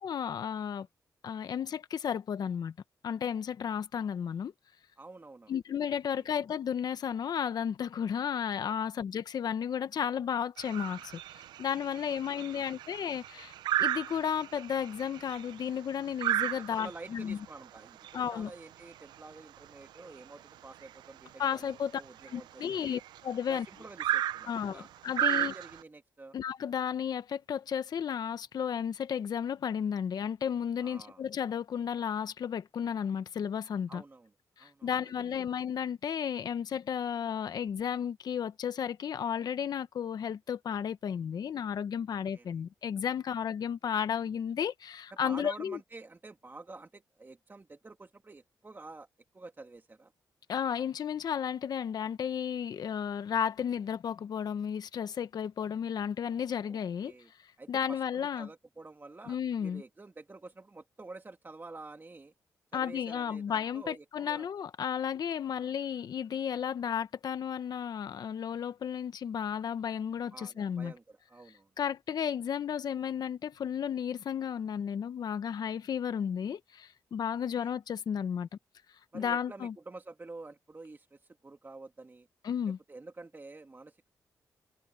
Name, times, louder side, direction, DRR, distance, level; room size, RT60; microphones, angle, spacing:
voice 1, 0.0-0.9 1.2-2.7 3.0-4.5 5.5-13.5 13.8-17.4 18.1-18.5 21.4-22.0 22.3-23.7 24.4-25.5 26.3-34.0 34.6-45.8 50.5-57.1 57.4-58.5 59.3-59.8 62.7-70.9 71.8-78.5 79.1-79.7 82.4-82.8, left 8 dB, 65° left, 1.0 m, -33 dB
voice 2, 5.0-5.5 6.1-6.2 12.3-12.8 16.4-22.9 23.5-24.9 25.3-26.3 30.8-31.2 33.9-34.3 34.6-35.5 42.1-42.6 45.2-49.1 49.3-50.1 56.7-57.3 57.6-62.3 62.7-64.5 65.4-65.7 70.3-71.7 77.4-77.7 79.1-82.3 82.9-84.1, right 3 dB, 30° right, 1.9 m, -49 dB
sound 1, 10.6-25.8, right 13 dB, 90° right, 0.6 m, -35 dB
cardioid pair, 60°, 7 cm